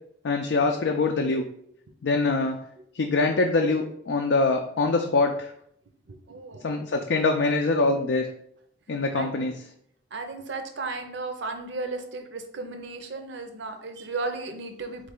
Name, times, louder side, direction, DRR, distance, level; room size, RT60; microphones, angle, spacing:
voice 1, 0.2-1.5 2.0-2.6 2.9-5.5 6.6-8.3 8.9-9.5, left 3 dB, 65° left, 2 dB, 0.4 m, -24 dB
voice 2, 6.1-6.7 9.1-9.4 10.1-15.1, right 3 dB, 65° right, 6 dB, 0.6 m, -35 dB
4.1 x 3.2 x 3.7 m, 0.68 s
head